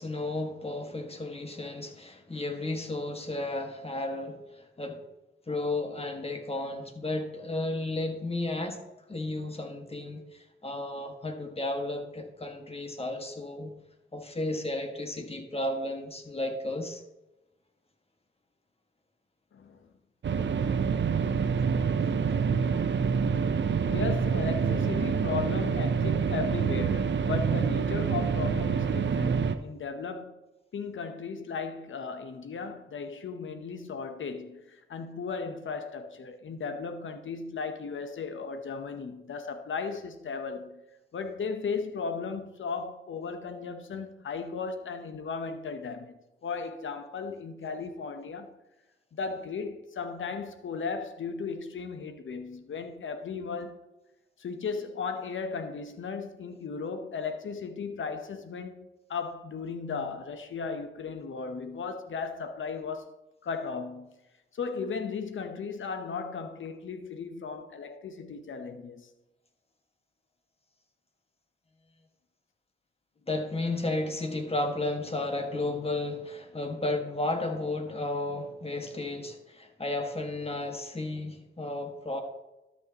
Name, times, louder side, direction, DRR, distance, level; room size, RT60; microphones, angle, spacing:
voice 1, 0.0-5.0 5.5-8.8 9.1-13.7 14.1-17.0 73.3-82.2, left 2 dB, 30° left, 1.7 m, -33 dB
voice 2, 19.5-19.9 23.9-30.4 30.7-40.8 41.1-48.5 49.1-53.8 54.4-63.1 63.4-64.2 64.5-69.1, left 5 dB, 70° left, 0.9 m, -36 dB
sound 1, 20.2-29.5, right 6 dB, 65° right, 0.6 m, -27 dB
12.5 x 6.3 x 2.9 m
supercardioid pair, 45°, 21 cm